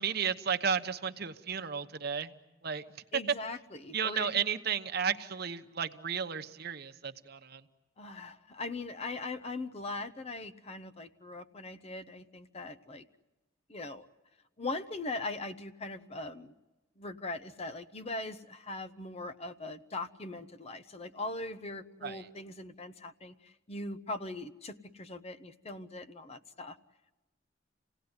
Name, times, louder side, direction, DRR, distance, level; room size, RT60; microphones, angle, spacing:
voice 1, 0.0-2.3 2.6-2.8 3.9-7.6 22.0-22.2, right 7 dB, 55° right, 8 dB, 1.0 m, -33 dB
voice 2, 3.1-4.4 8.0-13.0 13.7-14.1 14.6-16.5 17.0-26.8, left 2 dB, 30° left, 11 dB, 0.8 m, -40 dB
27.5 x 17.5 x 9.6 m, 1.1 s
head